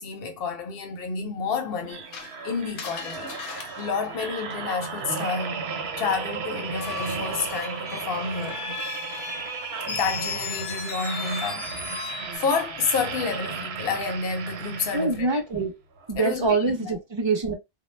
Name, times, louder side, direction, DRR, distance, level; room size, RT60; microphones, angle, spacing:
voice 1, 0.0-2.0 2.4-3.3 3.8-5.6 6.0-8.6 9.9-11.7 12.1-15.4 16.2-16.9, left 5 dB, 60° left, 0.8 m, -29 dB
sound 1, 1.8-15.4 16.0-16.2, right 5 dB, 70° right, 0.8 m, -35 dB
Screech, 2.1-5.0 6.7-12.4, left 6 dB, 90° left, 0.9 m, -37 dB
voice 2, 14.9-15.7 16.1-17.5, right 3 dB, 40° right, 0.4 m, -24 dB
2.1 x 2.0 x 3.1 m
omnidirectional pair, 1.2 m